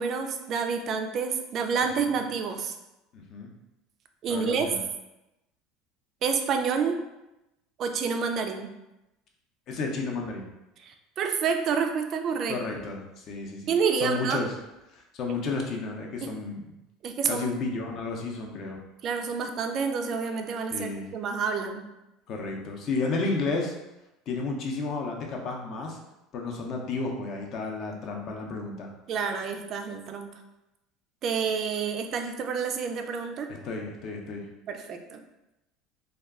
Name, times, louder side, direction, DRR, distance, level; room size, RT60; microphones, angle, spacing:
voice 1, 0.0-2.7 4.2-4.7 6.2-7.0 7.8-8.7 10.8-12.6 13.7-14.4 15.3-15.4 16.2-16.3 17.0-17.6 19.0-21.8 29.1-30.3 31.2-33.5 34.7-35.2, right 6 dB, 45° right, 5 dB, 0.3 m, -28 dB
voice 2, 3.1-3.5 4.3-4.8 9.7-10.5 12.5-13.7 14.0-14.5 14.9-16.6 17.3-18.8 20.7-21.1 22.3-23.7 24.3-26.0 26.3-28.9 33.5-34.4, left 3 dB, 45° left, 1 dB, 0.5 m, -32 dB
2.2 x 2.2 x 3.5 m, 0.95 s
supercardioid pair, 130°, 0 cm